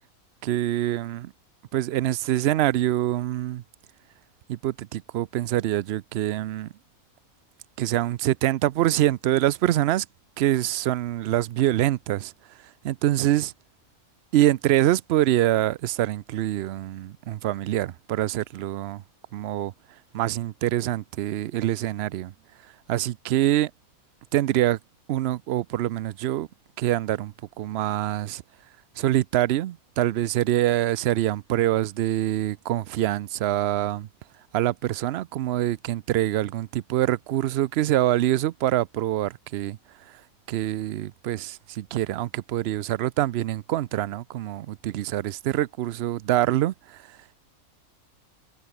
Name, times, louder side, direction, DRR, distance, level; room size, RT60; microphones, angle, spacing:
voice 1, 0.4-1.3 1.7-3.6 4.5-6.7 7.8-10.1 10.4-12.3 12.8-13.5 14.3-19.0 19.3-19.7 20.1-22.3 22.9-23.7 24.3-24.8 25.1-26.5 26.8-28.4 29.0-34.1 34.5-39.8 40.5-47.2, right 14 dB, 65° right, 0.6 m, -25 dB
omnidirectional pair, 1.5 m